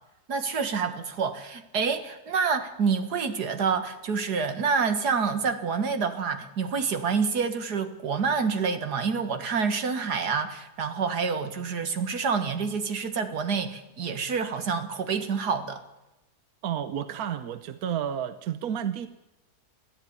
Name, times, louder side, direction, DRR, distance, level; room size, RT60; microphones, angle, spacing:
voice 1, 0.3-15.8, right 5 dB, 85° right, 9 dB, 2.2 m, -27 dB
voice 2, 16.6-19.1, right 9 dB, 70° right, 11 dB, 1.3 m, -31 dB
20.0 x 14.0 x 9.6 m, 0.99 s
omnidirectional pair, 1.7 m